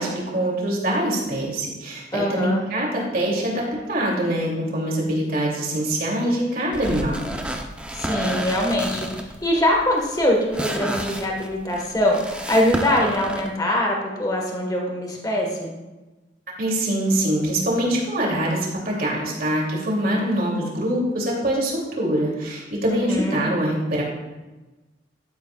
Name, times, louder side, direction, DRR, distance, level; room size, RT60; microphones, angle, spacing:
voice 1, 0.0-7.3 16.6-24.0, right 1 dB, 50° right, -2 dB, 2.7 m, -24 dB
voice 2, 2.1-2.6 7.9-15.7 22.9-23.5, left 1 dB, 20° left, 0 dB, 1.4 m, -23 dB
sound 1, 6.7-13.5, right 1 dB, 5° right, 0.6 m, -31 dB
11.5 x 10.5 x 2.4 m, 1.1 s
head